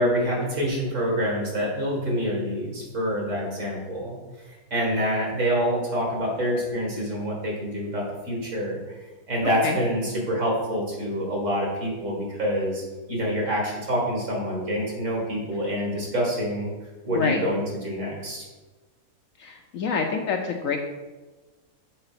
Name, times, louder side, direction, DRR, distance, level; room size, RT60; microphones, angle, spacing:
voice 1, 0.0-4.2 4.7-8.8 9.3-12.8 13.1-16.7 17.0-18.5, equal, 50° right, -3 dB, 2.3 m, -26 dB
voice 2, 17.1-17.4 19.4-20.8, left 5 dB, 65° left, 3 dB, 0.9 m, -26 dB
6.8 x 4.0 x 5.8 m, 1.2 s
omnidirectional pair, 1.7 m